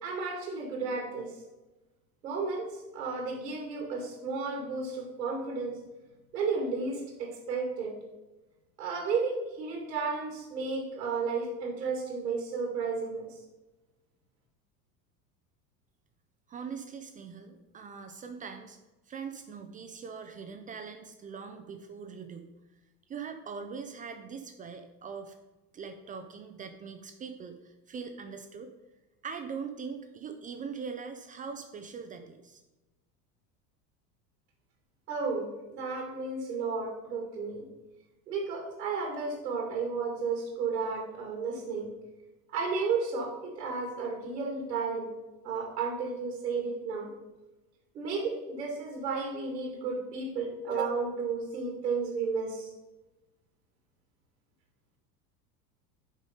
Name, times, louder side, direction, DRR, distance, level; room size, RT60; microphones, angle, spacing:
voice 1, 0.0-1.3 2.2-5.8 6.3-7.9 8.8-13.4 35.1-37.6 38.3-41.9 42.5-45.1 45.4-47.1 47.9-52.7, right 4 dB, 75° right, 2 dB, 1.9 m, -33 dB
voice 2, 16.5-18.8 19.1-22.5 23.1-25.4 25.7-28.7 29.2-32.6, right 6 dB, 15° right, 6 dB, 0.4 m, -42 dB
7.2 x 5.1 x 5.4 m, 1.1 s
figure-of-eight pair, 75°, 50 cm